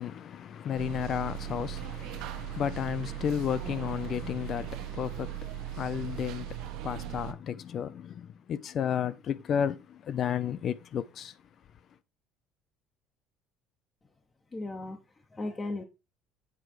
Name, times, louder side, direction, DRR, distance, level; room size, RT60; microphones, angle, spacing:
voice 1, 0.0-11.3, left 8 dB, 40° left, 0.5 m, -33 dB
sound 1, 0.7-7.3, right 15 dB, 70° right, 0.8 m, -38 dB
voice 2, 14.5-15.8, left 2 dB, 20° left, 0.9 m, -37 dB
8.3 x 4.7 x 4.5 m
cardioid pair, 145°, 0 cm